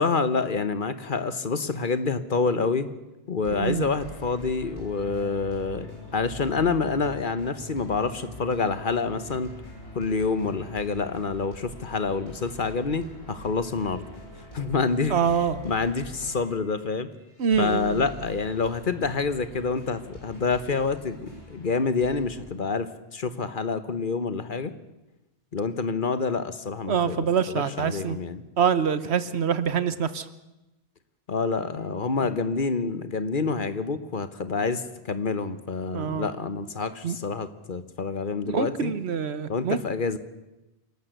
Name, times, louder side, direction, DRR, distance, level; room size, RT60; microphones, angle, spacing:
voice 1, 0.0-2.9 3.3-9.5 9.9-14.0 14.5-17.1 17.6-24.7 25.5-28.4 31.3-38.9 39.5-40.2, left 4 dB, 50° left, 12 dB, 1.3 m, -27 dB
sound 1, 3.4-22.4, left 1 dB, 90° left, 8.0 m, -44 dB
voice 2, 3.5-3.8 15.1-15.6 17.4-18.0 26.9-28.2 28.6-30.2 35.9-36.3 37.0-37.2 38.5-39.8, right 7 dB, 75° right, 14 dB, 1.2 m, -25 dB
27.5 x 12.5 x 8.1 m, 0.98 s
omnidirectional pair, 1.1 m